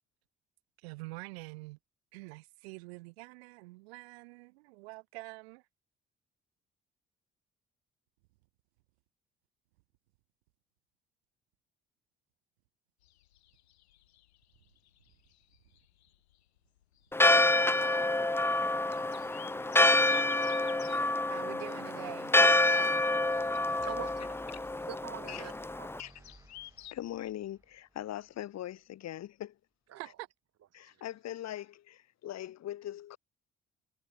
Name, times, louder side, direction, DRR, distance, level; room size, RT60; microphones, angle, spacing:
voice 1, 0.8-1.8 2.1-5.6 21.3-22.4 29.9-30.3, right 25 dB, 70° right, 3.2 m, -46 dB
sound 1, 13.0-26.9, left 14 dB, 75° left, 4.5 m, -55 dB
Church bell, 17.1-26.0, left 2 dB, 5° left, 0.8 m, -27 dB
voice 2, 23.0-24.2 24.9-26.0 29.9-30.0, right 11 dB, 50° right, 3.3 m, -45 dB
sound 2, 23.1-28.4, right 1 dB, 10° right, 6.8 m, -57 dB
voice 3, 26.9-29.6 30.7-33.2, left 12 dB, 55° left, 3.6 m, -41 dB
figure-of-eight pair, 45°, 32 cm